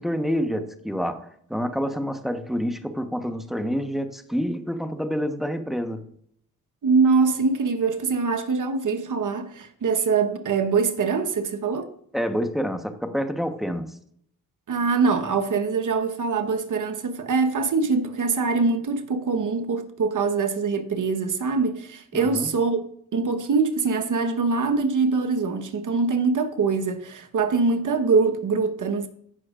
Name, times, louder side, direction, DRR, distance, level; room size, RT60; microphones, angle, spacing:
voice 1, 0.0-6.1 12.1-13.9 22.1-22.5, equal, ahead, 1.1 m, -28 dB
voice 2, 6.8-11.9 14.7-22.8 23.1-29.1, right 4 dB, 55° right, 1.3 m, -23 dB
17.5 x 6.3 x 2.5 m
cardioid pair, 65°, 37 cm